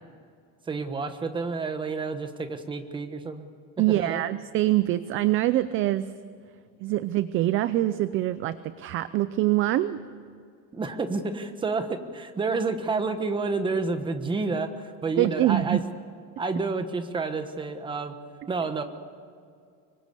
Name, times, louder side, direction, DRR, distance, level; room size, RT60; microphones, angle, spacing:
voice 1, 0.7-3.5 3.9-4.2 10.7-15.8 16.4-18.2 18.5-18.8, right 3 dB, 15° right, 8 dB, 1.2 m, -29 dB
voice 2, 3.8-6.1 6.8-10.0 15.2-15.8, right 15 dB, 35° right, 14 dB, 0.5 m, -24 dB
25.5 x 23.5 x 8.4 m, 2.3 s
cardioid pair, 180°, 35 cm